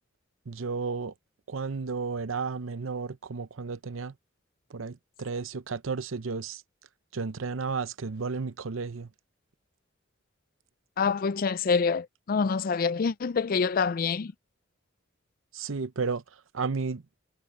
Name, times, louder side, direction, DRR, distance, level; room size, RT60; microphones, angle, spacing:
voice 1, 0.5-1.1 1.5-4.1 4.7-6.6 7.1-9.1 15.5-16.2 16.5-17.0, right 4 dB, 85° right, 0.7 m, -33 dB
voice 2, 11.0-14.3, left 5 dB, 45° left, 0.4 m, -26 dB
head